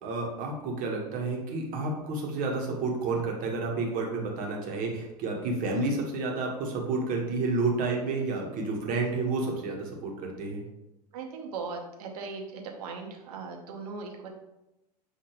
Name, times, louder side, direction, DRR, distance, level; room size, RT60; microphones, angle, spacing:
voice 1, 0.0-10.6, right 3 dB, 40° right, 0 dB, 1.2 m, -30 dB
voice 2, 11.1-14.3, right 4 dB, 65° right, 1 dB, 1.0 m, -38 dB
6.2 x 2.8 x 3.0 m, 0.92 s
figure-of-eight pair, 85°, 21 cm